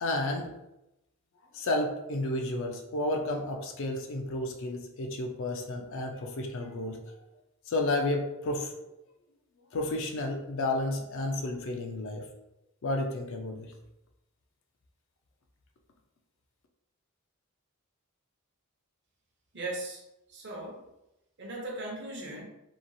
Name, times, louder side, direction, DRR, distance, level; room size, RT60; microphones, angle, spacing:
voice 1, 0.0-0.5 1.5-7.0 7.7-8.7 9.7-12.2 12.8-13.7, left 2 dB, 60° left, 3 dB, 0.4 m, -31 dB
voice 2, 19.5-20.0 20.3-20.8 21.4-22.4, right 2 dB, 50° right, -1 dB, 0.7 m, -38 dB
2.9 x 2.3 x 2.6 m, 0.91 s
head